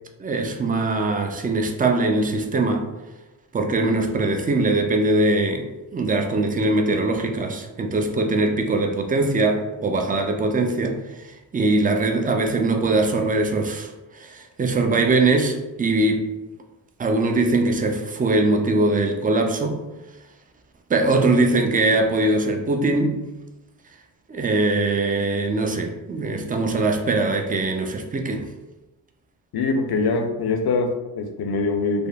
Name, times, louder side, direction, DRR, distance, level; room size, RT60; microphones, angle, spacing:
voice 1, 0.2-2.9 3.5-16.3 17.0-19.8 20.9-23.2 24.3-28.5, right 2 dB, 20° right, 0.3 m, -22 dB
voice 2, 29.5-32.1, left 3 dB, 55° left, 0.5 m, -23 dB
3.5 x 2.0 x 2.3 m
cardioid pair, 50°, 48 cm